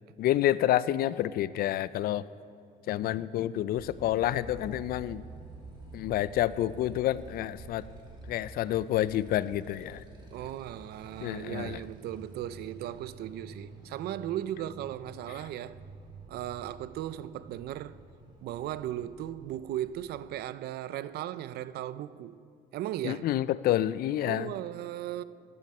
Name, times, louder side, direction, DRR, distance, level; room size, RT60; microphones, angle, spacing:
voice 1, 0.2-2.2 2.9-5.2 5.9-7.8 8.3-10.0 11.2-11.8 23.0-24.5, left 13 dB, 60° left, 0.4 m, -28 dB
Motorcycle, 3.7-20.2, right 2 dB, 30° right, 2.7 m, -49 dB
voice 2, 10.3-15.8 16.3-18.0 18.4-22.4 22.7-23.2 24.2-25.2, right 12 dB, 70° right, 0.4 m, -37 dB
15.0 x 11.0 x 4.3 m
cardioid pair, 110°, 17 cm